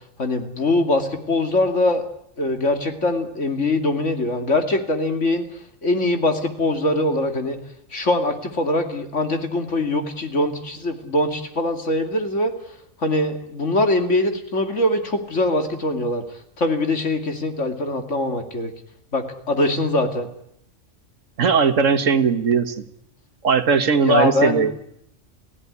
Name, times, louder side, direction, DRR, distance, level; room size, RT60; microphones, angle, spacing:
voice 1, 0.2-2.0 2.4-5.5 5.8-7.6 7.9-12.5 13.0-16.2 16.6-18.7 19.1-20.3 24.0-24.7, left 2 dB, 65° left, 6 dB, 2.8 m, -22 dB
voice 2, 21.4-22.8 23.4-24.7, right 6 dB, 75° right, 9 dB, 1.8 m, -18 dB
29.0 x 16.0 x 9.8 m, 0.75 s
omnidirectional pair, 1.3 m